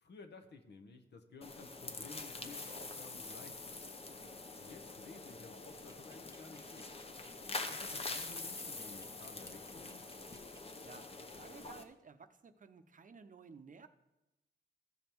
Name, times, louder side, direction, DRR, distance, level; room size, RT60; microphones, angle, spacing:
voice 1, 0.0-3.8 4.6-6.9 7.7-10.0, left 4 dB, 70° left, 7 dB, 1.1 m, -55 dB
sound 1, 1.4-11.8, left 3 dB, 35° left, 0.8 m, -45 dB
sound 2, 5.9-10.6, right 3 dB, 20° right, 0.9 m, -60 dB
voice 2, 10.8-13.9, right 5 dB, 45° right, 9 dB, 0.6 m, -55 dB
14.5 x 5.2 x 4.5 m, 0.97 s
cardioid pair, 85°, 18 cm